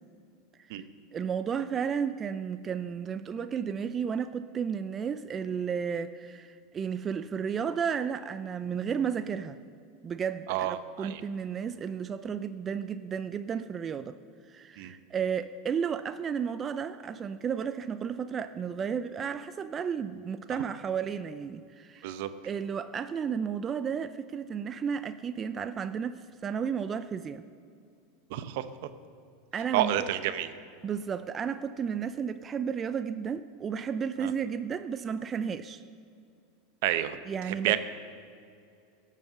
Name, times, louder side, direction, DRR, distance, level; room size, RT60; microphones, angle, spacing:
voice 1, 0.6-9.6 10.0-14.2 14.5-22.1 22.4-27.4 29.5-29.9 30.8-35.8 37.3-37.8, right 7 dB, 30° right, 12 dB, 0.5 m, -33 dB
voice 2, 10.5-11.2 14.8-14.9 22.0-22.3 28.3-28.6 29.7-30.5 34.2-34.3 36.8-37.2 37.5-37.8, right 13 dB, 65° right, 12 dB, 0.8 m, -29 dB
17.0 x 7.4 x 6.6 m, 2.4 s
hypercardioid pair, 95°, 0 cm